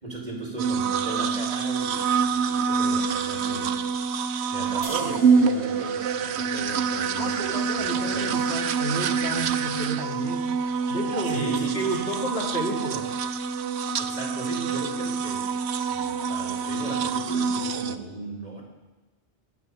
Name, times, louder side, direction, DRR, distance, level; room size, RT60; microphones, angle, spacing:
voice 1, 0.0-3.8 4.5-8.5 11.3-12.0 14.0-15.5 15.9-18.6, right 2 dB, 40° right, -3 dB, 4.5 m, -36 dB
sound 1, 0.6-18.0, right 5 dB, 80° right, 1.0 m, -26 dB
sound 2, 4.8-12.1, right 1 dB, 60° right, 3.1 m, -45 dB
voice 2, 7.1-10.6 10.9-13.1, right 1 dB, 70° left, 0 dB, 2.4 m, -32 dB
21.5 x 9.5 x 5.6 m, 1.2 s
omnidirectional pair, 1.1 m